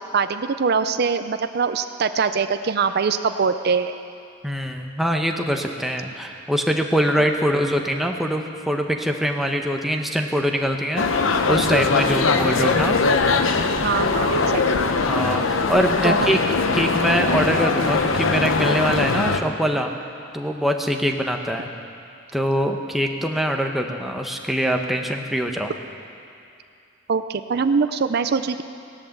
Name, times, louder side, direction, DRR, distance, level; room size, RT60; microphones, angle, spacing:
voice 1, 0.1-3.9 13.8-14.9 16.0-16.3 27.1-28.6, right 5 dB, 55° right, 9 dB, 0.5 m, -23 dB
voice 2, 4.4-11.1 11.5-13.0 15.1-16.4 16.7-19.9 20.3-21.7 22.3-25.7, equal, ahead, 2 dB, 1.0 m, -23 dB
sound 1, 11.0-19.4, left 4 dB, 85° left, 0.8 m, -21 dB
16.5 x 11.0 x 7.3 m, 2.5 s
head